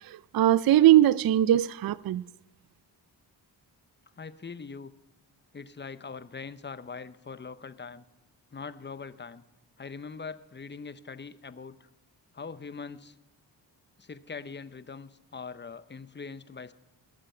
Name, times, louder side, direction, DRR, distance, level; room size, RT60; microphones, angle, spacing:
voice 1, 0.0-2.2, right 13 dB, 55° right, 0.5 m, -21 dB
voice 2, 4.2-4.9 5.5-8.0 8.5-9.4 9.8-11.9 12.3-13.1 14.0-16.7, left 5 dB, 25° left, 0.8 m, -42 dB
20.0 x 7.7 x 4.4 m
cardioid pair, 55°, 45 cm